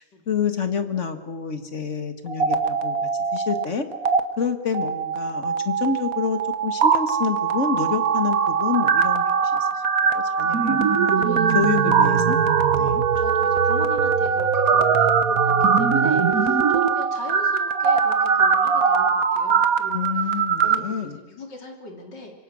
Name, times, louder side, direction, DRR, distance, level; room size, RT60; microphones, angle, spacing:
voice 1, 0.0-2.6 2.8-3.0 3.3-3.9 4.4-9.7 10.0-11.1 11.5-12.4 12.7-13.0 19.9-21.2, left 6 dB, 45° left, 8 dB, 1.9 m, -28 dB
sound 1, 2.3-3.6 3.9-4.2 4.7-20.7, right 6 dB, 55° right, 1.6 m, -21 dB
voice 2, 10.8-12.0 13.2-22.3, left 3 dB, 80° left, 2 dB, 3.8 m, -40 dB
25.5 x 23.5 x 6.3 m, 1.2 s
omnidirectional pair, 1.8 m